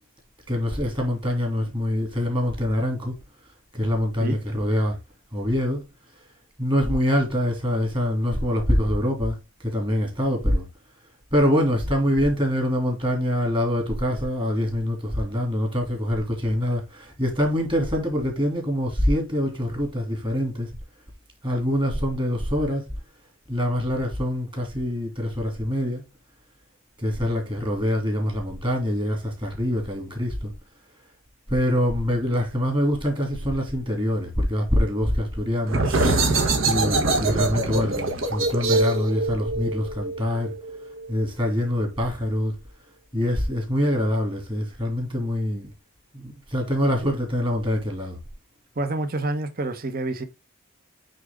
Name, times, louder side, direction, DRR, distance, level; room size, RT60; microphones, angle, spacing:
voice 1, 0.5-3.1 3.7-5.0 5.3-5.8 6.6-10.7 11.3-20.7 21.4-22.9 23.5-26.0 27.0-30.5 31.5-35.8 36.6-40.5 41.1-42.5 43.1-45.7 46.1-48.2, equal, 20° right, 2.5 m, -24 dB
voice 2, 4.2-4.6 48.7-50.2, right 2 dB, 40° right, 1.1 m, -28 dB
sound 1, 35.7-41.1, right 2 dB, 60° right, 1.5 m, -24 dB
8.4 x 3.9 x 3.6 m
head